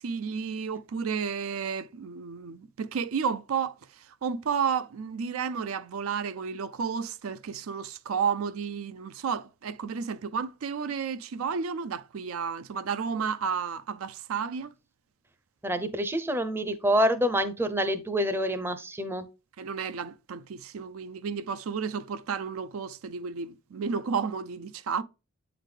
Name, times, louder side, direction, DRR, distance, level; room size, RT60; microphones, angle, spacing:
voice 1, 0.0-14.7 19.6-25.0, right 6 dB, 85° right, 0.4 m, -32 dB
voice 2, 15.6-19.3, equal, 10° right, 0.5 m, -27 dB
8.1 x 3.9 x 3.3 m
head